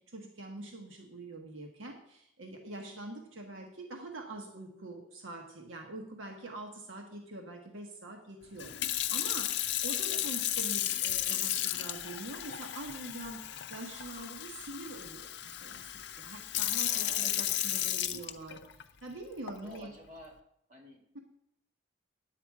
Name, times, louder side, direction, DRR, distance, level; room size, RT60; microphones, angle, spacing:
voice 1, 0.1-19.9, right 2 dB, 80° right, 2 dB, 1.3 m, -45 dB
voice 2, 3.3-3.6 10.1-10.3 16.9-17.4 19.6-20.4 20.7-21.2, right 1 dB, 40° right, -2 dB, 2.2 m, -51 dB
Sink (filling or washing) / Fill (with liquid), 8.6-18.8 19.5-19.8, left 12 dB, 55° left, 0.5 m, -34 dB
10.5 x 8.1 x 4.8 m, 0.73 s
head